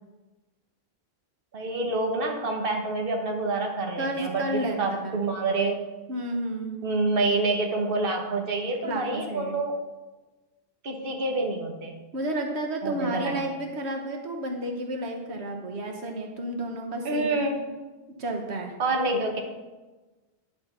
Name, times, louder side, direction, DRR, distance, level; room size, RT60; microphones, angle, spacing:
voice 1, 1.5-5.8 6.8-9.8 10.8-11.9 12.8-13.4 17.0-17.6 18.8-19.4, right 2 dB, 60° right, 2 dB, 1.4 m, -27 dB
voice 2, 4.0-5.2 6.1-6.8 8.8-9.6 12.1-17.4 18.2-18.7, right 1 dB, 85° right, 3 dB, 1.4 m, -31 dB
10.5 x 5.1 x 6.8 m, 1.2 s
omnidirectional pair, 1.1 m